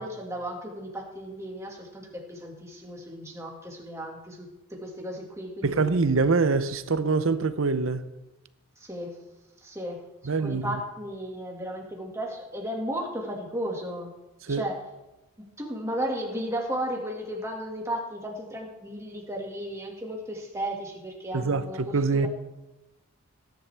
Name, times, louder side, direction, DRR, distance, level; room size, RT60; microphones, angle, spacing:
voice 1, 0.0-5.8 8.8-9.2 9.6-10.0 10.4-14.1 14.5-14.8 15.6-22.3, equal, 15° right, 2.0 m, -34 dB
voice 2, 5.6-8.1 10.2-10.8 14.5-14.6 21.3-22.3, right 4 dB, 65° right, 0.7 m, -24 dB
19.0 x 10.5 x 3.5 m
head